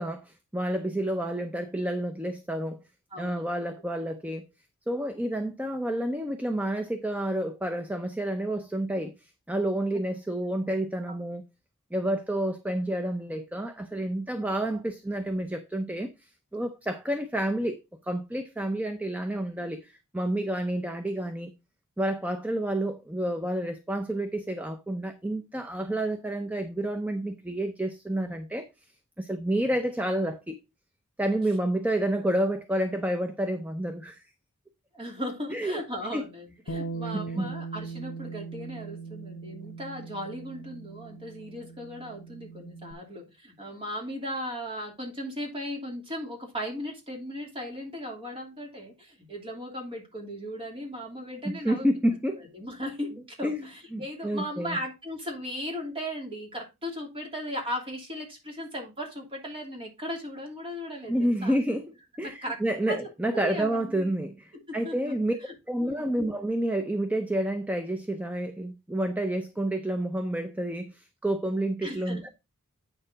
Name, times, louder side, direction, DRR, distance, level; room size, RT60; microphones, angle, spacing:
voice 1, 0.0-2.8 3.2-4.5 4.9-11.4 11.9-17.8 18.0-21.5 22.0-28.7 29.2-30.6 31.2-34.2 35.5-35.8 36.1-36.2 37.1-37.5 51.4-52.4 53.4-53.6 53.9-54.8 61.1-61.9 62.2-65.4 65.7-72.3, right 1 dB, 5° right, 0.6 m, -29 dB
voice 2, 3.1-3.5 11.1-11.2 34.9-51.9 52.3-61.6 62.2-62.6 62.9-64.1 64.5-65.1 65.5-65.6 65.8-66.1 71.8-72.3, equal, 25° right, 2.8 m, -37 dB
Bass guitar, 36.7-42.9, right 4 dB, 75° left, 1.2 m, -39 dB
8.6 x 6.6 x 3.8 m
head